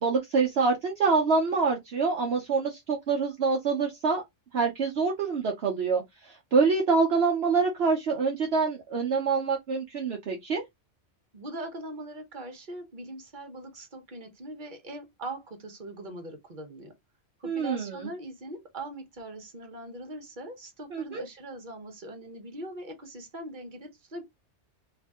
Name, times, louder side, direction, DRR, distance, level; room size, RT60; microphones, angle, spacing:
voice 1, 0.0-4.2 4.5-10.6 17.4-18.1 20.9-21.2, right 4 dB, 60° right, 1.0 m, -26 dB
voice 2, 11.3-16.9 17.4-24.3, right 1 dB, 45° right, 1.2 m, -41 dB
3.2 x 2.6 x 3.6 m
omnidirectional pair, 1.2 m